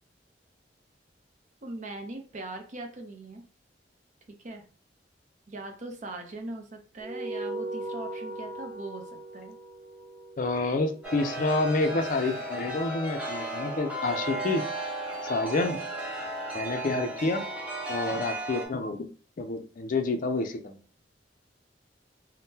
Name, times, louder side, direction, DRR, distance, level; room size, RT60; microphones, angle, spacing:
voice 1, 1.6-3.4 4.3-4.6 5.5-9.6, right 2 dB, 45° right, 4 dB, 0.6 m, -40 dB
sound 1, 7.0-11.8, right 2 dB, 85° right, 0.8 m, -39 dB
voice 2, 10.4-14.6 15.3-15.8 16.5-17.5 17.9-19.1 19.4-20.8, left 3 dB, 50° left, 6 dB, 0.4 m, -28 dB
Chime, 11.0-18.7, right 2 dB, 5° right, 0.7 m, -35 dB
3.6 x 2.1 x 2.7 m, 0.39 s
head